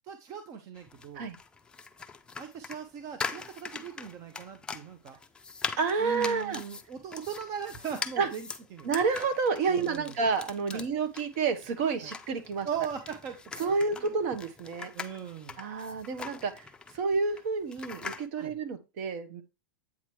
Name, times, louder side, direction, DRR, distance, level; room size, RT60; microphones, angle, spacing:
voice 1, 0.0-1.3 2.4-5.2 6.0-8.9 9.7-10.1 10.7-10.8 12.0-12.1 12.6-13.4 13.9-14.1 14.9-15.6 18.4-18.5, right 7 dB, 35° right, 7 dB, 0.8 m, -39 dB
sound 1, 0.8-18.3, left 5 dB, 10° left, 0.5 m, -42 dB
voice 2, 5.8-6.6 8.2-8.3 8.8-12.7 13.6-14.9 15.6-16.7 16.9-19.4, right 4 dB, 50° right, 9 dB, 1.3 m, -29 dB
8.4 x 3.0 x 4.7 m, 0.26 s
hypercardioid pair, 140°, 10 cm